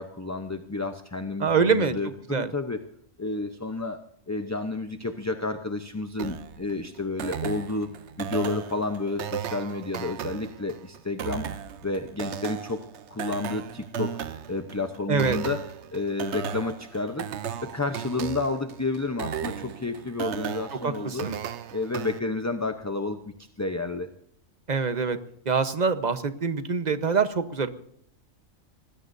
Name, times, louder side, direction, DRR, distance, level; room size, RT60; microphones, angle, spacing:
voice 1, 0.0-2.8 3.2-4.0 4.3-7.9 8.2-11.5 11.8-12.8 13.1-14.2 14.5-15.6 15.9-17.3 17.6-21.3 21.7-24.1, left 3 dB, 15° left, 6 dB, 0.7 m, -30 dB
voice 2, 1.4-2.0 2.3-2.5 15.1-15.4 20.7-21.4 24.7-25.2 25.4-27.7, right 5 dB, 35° right, 10 dB, 1.1 m, -25 dB
sound 1, 6.2-22.2, right 8 dB, 60° right, 1.0 m, -36 dB
25.5 x 20.0 x 2.7 m, 0.68 s
omnidirectional pair, 1.4 m